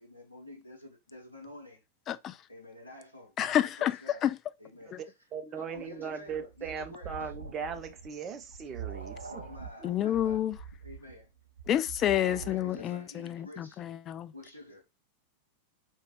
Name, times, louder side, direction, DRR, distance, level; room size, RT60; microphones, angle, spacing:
voice 1, 0.0-1.8 2.5-4.3 4.6-5.0 5.6-7.3 9.3-10.4 10.8-11.3 12.3-13.8 14.3-14.9, left 1 dB, 80° left, 1.0 m, -49 dB
voice 2, 3.4-4.4 4.9-5.0 9.8-10.6 11.7-14.3, left 11 dB, 30° left, 0.4 m, -29 dB
voice 3, 5.3-9.3 10.0-10.1, right 6 dB, 25° right, 0.8 m, -38 dB
sound 1, 5.7-12.8, right 6 dB, 80° right, 0.5 m, -44 dB
4.1 x 3.2 x 3.1 m
figure-of-eight pair, 90°, 0 cm